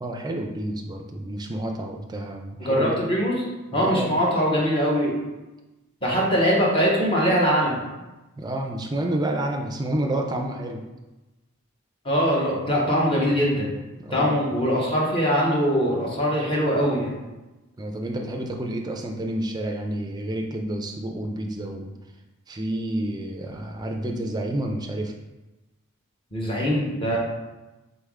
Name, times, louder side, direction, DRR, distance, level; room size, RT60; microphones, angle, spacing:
voice 1, 0.0-3.1 3.7-4.2 8.4-10.8 13.9-14.4 17.8-21.9 22.5-25.1 27.0-27.2, right 1 dB, 20° right, 2 dB, 0.4 m, -29 dB
voice 2, 2.6-3.4 3.7-5.1 6.0-7.8 12.0-13.7 14.1-17.1 26.3-27.2, equal, 25° left, -4 dB, 0.9 m, -22 dB
3.9 x 3.3 x 3.6 m, 1.1 s
head